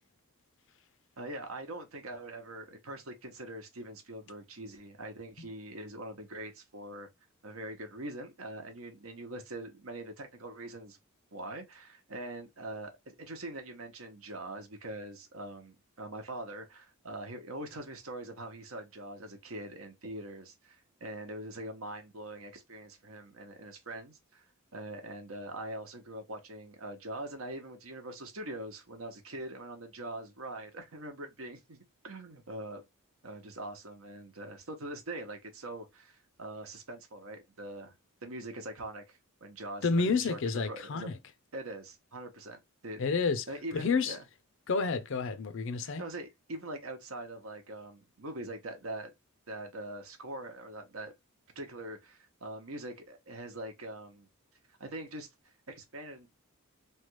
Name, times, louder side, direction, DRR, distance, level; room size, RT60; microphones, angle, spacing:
voice 1, 1.2-7.1 7.4-11.0 11.3-12.9 13.2-24.4 24.7-32.8 33.2-37.9 38.2-40.4 40.6-41.1 41.5-43.0 43.5-44.2 45.8-49.1 49.5-51.1 51.6-54.3 54.8-56.3, right 1 dB, 70° right, 0.9 m, -43 dB
voice 2, 39.8-41.2 43.0-44.2 44.7-46.0, left 4 dB, 55° left, 0.5 m, -30 dB
3.1 x 2.3 x 3.0 m
head